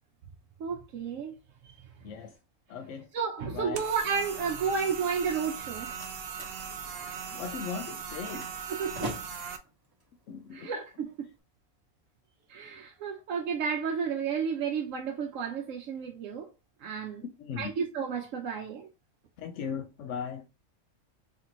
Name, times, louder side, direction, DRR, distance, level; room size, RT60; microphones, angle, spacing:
voice 1, 0.6-1.3 3.1-5.9 8.7-9.1 10.5-11.3 12.5-16.5 16.8-17.2 17.6-18.9, right 6 dB, 90° right, 1.0 m, -32 dB
voice 2, 2.0-2.4 2.7-3.1 3.4-3.9 7.3-8.5 10.3-10.7 17.4-17.7 19.4-20.5, left 7 dB, 75° left, 0.9 m, -38 dB
sound 1, 3.7-9.6, right 6 dB, 60° right, 0.7 m, -39 dB
Slam, 5.5-11.4, right 1 dB, 20° right, 1.2 m, -45 dB
3.3 x 2.9 x 3.7 m
omnidirectional pair, 1.3 m